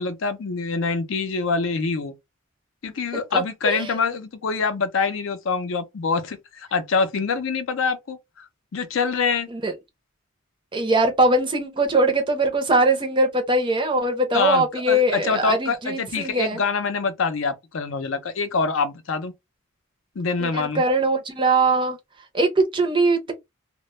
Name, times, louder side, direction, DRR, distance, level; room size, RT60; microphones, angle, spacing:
voice 1, 0.0-2.1 2.8-8.5 8.7-9.5 14.3-19.3 20.2-20.8, left 4 dB, 65° left, 0.5 m, -25 dB
voice 2, 3.3-3.9 9.5-9.7 10.7-16.6 20.4-22.0 22.3-23.3, right 2 dB, 20° right, 0.5 m, -21 dB
2.1 x 2.0 x 3.0 m
head